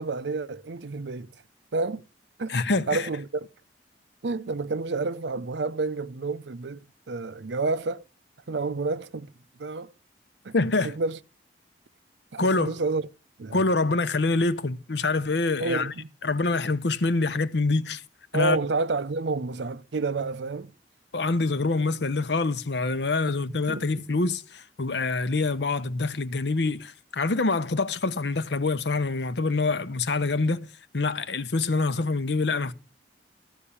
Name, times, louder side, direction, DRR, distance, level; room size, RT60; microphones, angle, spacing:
voice 1, 0.0-1.3 1.7-2.0 2.4-2.5 2.9-3.5 4.2-8.0 8.5-9.3 9.6-9.9 10.4-10.5 10.8-11.2 12.3-13.1 13.4-13.6 15.6-16.1 18.3-20.7 23.5-24.0, right 3 dB, 80° right, 0.6 m, -29 dB
voice 2, 2.5-3.1 10.5-10.9 12.4-12.8 13.5-15.9 16.2-18.0 18.3-18.6 21.1-30.7 30.9-32.7, left 3 dB, 70° left, 0.8 m, -25 dB
14.0 x 5.6 x 8.5 m
head